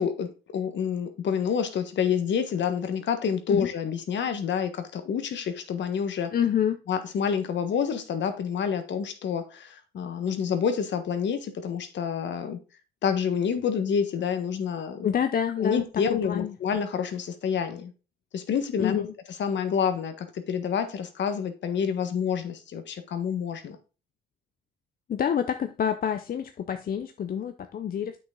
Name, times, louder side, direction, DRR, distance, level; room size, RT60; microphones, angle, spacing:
voice 1, 0.0-6.3 6.9-12.6 13.0-15.1 15.6-17.9 18.3-19.1 19.4-23.8, left 7 dB, 65° left, 1.4 m, -28 dB
voice 2, 6.3-6.8 15.0-16.5 18.8-19.1 25.1-28.2, left 8 dB, 45° left, 0.6 m, -27 dB
8.1 x 6.2 x 3.8 m
cardioid pair, 90°, 20 cm